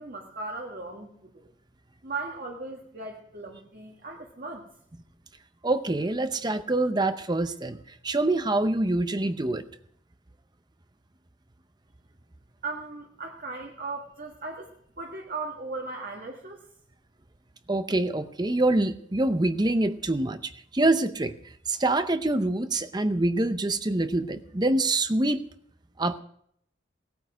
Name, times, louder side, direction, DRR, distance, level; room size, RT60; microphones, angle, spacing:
voice 1, 0.0-1.5 2.0-4.7 12.6-16.7, right 3 dB, 45° right, 1 dB, 1.7 m, -37 dB
voice 2, 5.6-7.8 8.0-9.6 17.7-21.3 21.7-25.4 26.0-26.2, right 2 dB, 20° right, 11 dB, 0.7 m, -25 dB
18.0 x 9.4 x 6.4 m, 0.68 s
head